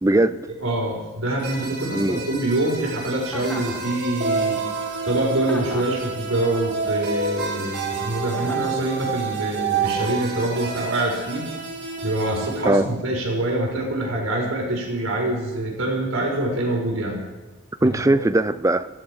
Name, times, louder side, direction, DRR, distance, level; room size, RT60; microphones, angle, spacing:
voice 1, 0.0-0.5 1.9-2.2 12.6-12.9 17.8-18.9, right 2 dB, 15° right, 12 dB, 0.4 m, -19 dB
voice 2, 0.6-4.6 5.0-11.5 12.0-17.2 17.8-18.2, right 1 dB, 65° right, -1 dB, 4.3 m, -25 dB
sound 1, 1.4-12.7, right 4 dB, 45° right, 3.7 m, -29 dB
Chuckle chortle, 3.3-3.8 5.4-6.0 8.3-8.8, equal, 5° left, 1.5 m, -35 dB
17.5 x 14.0 x 4.8 m, 1.2 s
head